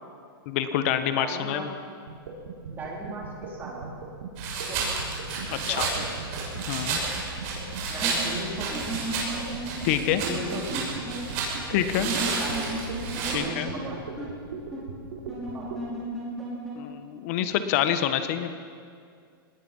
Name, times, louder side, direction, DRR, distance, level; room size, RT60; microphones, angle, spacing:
voice 1, 0.4-1.7 5.5-5.9 6.7-7.0 9.8-10.2 11.7-12.1 13.3-13.7 16.7-18.5, left 11 dB, 35° left, 9 dB, 1.4 m, -26 dB
voice 2, 1.2-1.7 2.7-4.0 4.7-4.8 5.5-6.1 7.9-9.2 10.2-11.1 12.0-12.9 13.2-14.0 15.3-15.7, right 2 dB, 15° right, -3 dB, 3.9 m, -37 dB
sound 1, 2.1-15.8, right 6 dB, 90° right, 4.9 m, -39 dB
sound 2, 4.4-13.3, right 4 dB, 35° right, 6.4 m, -31 dB
sound 3, 8.0-8.1 8.7-9.8 10.1-10.2 10.5-10.6 11.1-11.2 12.0-13.5 13.7-13.8 14.2-14.3 14.7-14.8 15.3-16.7, right 2 dB, ahead, 6.0 m, -34 dB
25.5 x 20.0 x 5.6 m, 2.2 s
supercardioid pair, 165°, 13 cm